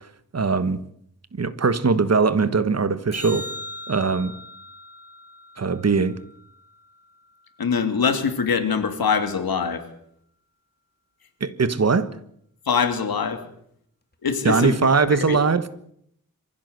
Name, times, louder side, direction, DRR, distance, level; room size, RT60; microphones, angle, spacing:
voice 1, 0.3-0.8 1.3-3.4 3.9-4.3 5.6-6.2 11.4-12.1 14.4-15.7, right 4 dB, 45° right, 1.4 m, -20 dB
sound 1, 3.1-7.6 14.1-14.2, left 1 dB, 30° left, 2.6 m, -40 dB
voice 2, 7.6-9.8 12.7-13.4 14.2-15.0 15.3-15.4, left 6 dB, 85° left, 2.7 m, -23 dB
23.5 x 15.5 x 8.0 m
wide cardioid pair, 110°, 35 cm